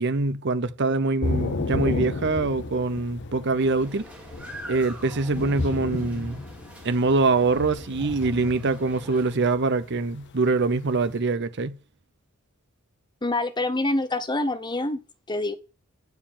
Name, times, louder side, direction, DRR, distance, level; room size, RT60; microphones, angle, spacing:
voice 1, 0.0-4.1 4.7-6.4 6.8-11.8, right 3 dB, 55° right, 0.8 m, -24 dB
Thunder / Rain, 1.2-11.2, left 2 dB, 55° left, 0.8 m, -33 dB
sound 1, 3.6-9.3, right 1 dB, 5° right, 2.1 m, -45 dB
voice 2, 13.2-15.0 15.3-15.6, left 2 dB, 20° left, 0.9 m, -26 dB
9.4 x 4.7 x 7.2 m
head